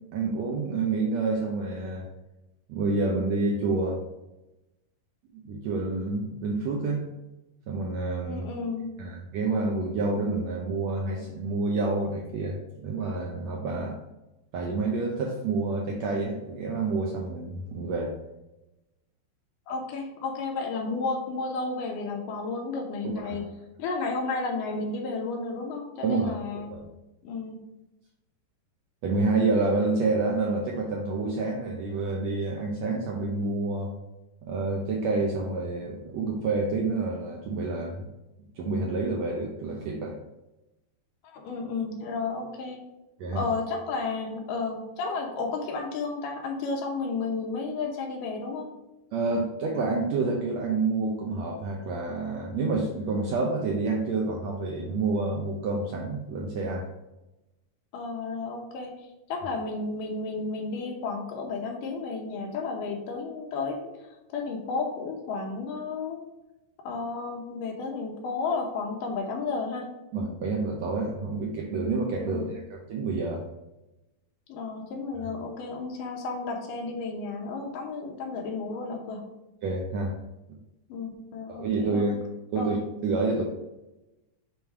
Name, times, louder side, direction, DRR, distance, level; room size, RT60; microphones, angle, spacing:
voice 1, 0.1-2.1 2.7-4.0 5.3-7.0 7.7-8.4 9.0-13.9 14.5-18.1 23.3-23.4 26.0-26.4 26.7-26.9 29.0-33.9 34.4-38.1 38.6-40.2 43.2-43.4 49.1-56.9 70.1-73.4 79.6-80.1 81.5-82.3 82.5-82.8 83.0-83.4, right 3 dB, 75° right, -1 dB, 1.6 m, -28 dB
voice 2, 8.2-8.9 19.7-23.4 23.8-26.7 27.2-27.6 41.2-42.8 43.3-48.7 57.9-58.9 59.3-63.9 64.3-66.2 66.8-69.9 72.3-72.5 74.5-79.3 80.9-82.1 82.6-82.8, left 4 dB, 75° left, 1 dB, 2.5 m, -32 dB
6.9 x 3.1 x 4.6 m, 0.97 s
omnidirectional pair, 3.9 m